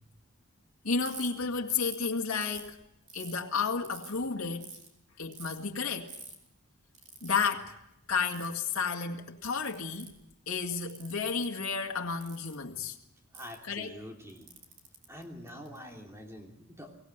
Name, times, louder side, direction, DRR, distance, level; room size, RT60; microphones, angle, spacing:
voice 1, 0.8-2.8 3.1-4.7 5.2-6.1 7.2-7.8 8.1-10.1 10.5-13.0 13.6-14.0, left 5 dB, 90° left, 2.0 m, -32 dB
Ratchet pawl, 1.0-1.3 1.7-2.0 2.4-3.4 3.8-4.2 4.6-4.9 5.3-5.6 6.1-6.3 6.9-7.5 8.2-8.9 9.4-10.2 10.8-11.5 12.2-12.5 13.3-13.6 14.3-15.8, right 4 dB, 35° right, 3.5 m, -47 dB
voice 2, 13.3-14.5 15.1-16.9, equal, 15° right, 3.1 m, -46 dB
24.0 x 18.0 x 8.0 m
head